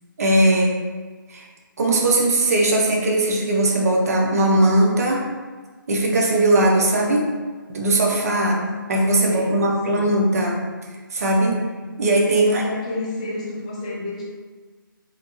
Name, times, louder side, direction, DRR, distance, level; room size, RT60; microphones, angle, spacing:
voice 1, 0.2-0.7 1.3-1.4 1.8-5.3 5.9-7.3 7.7-8.6 8.9-10.6 11.1-11.6 12.0-12.6, right 1 dB, 45° right, -1 dB, 0.4 m, -19 dB
voice 2, 9.2-10.2 12.4-14.2, left 2 dB, 20° left, -6 dB, 0.3 m, -31 dB
2.6 x 2.1 x 2.9 m, 1.4 s
figure-of-eight pair, 155°, 12 cm